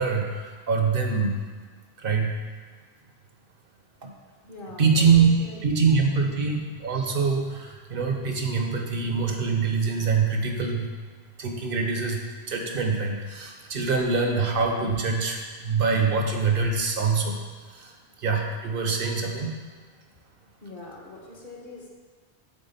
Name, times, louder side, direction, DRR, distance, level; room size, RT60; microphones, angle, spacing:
voice 1, 0.0-1.3 2.0-2.3 4.0-4.1 4.8-10.9 11.4-17.4 17.7-19.5, right 5 dB, 65° right, 2 dB, 0.9 m, -24 dB
voice 2, 4.5-5.6 20.6-21.9, left 2 dB, 55° left, -2 dB, 1.2 m, -42 dB
7.4 x 3.6 x 4.1 m, 1.4 s
omnidirectional pair, 1.1 m